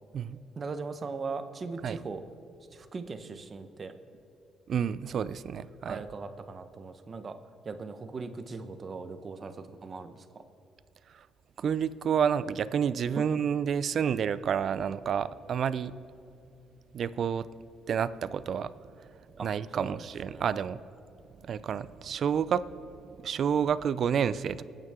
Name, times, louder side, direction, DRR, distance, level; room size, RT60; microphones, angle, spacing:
voice 1, 0.6-2.2 2.7-3.9 5.9-7.4 7.6-10.4 19.4-19.5 19.7-20.0 20.3-20.5, right 4 dB, 40° right, 9 dB, 1.0 m, -39 dB
voice 2, 4.7-6.0 11.1-11.3 11.6-15.9 16.9-17.5 17.9-18.7 19.4-20.8 21.4-22.7 23.1-24.6, right 7 dB, 60° right, 15 dB, 0.4 m, -29 dB
25.0 x 9.2 x 3.6 m, 2.6 s
cardioid pair, 90°, 0 cm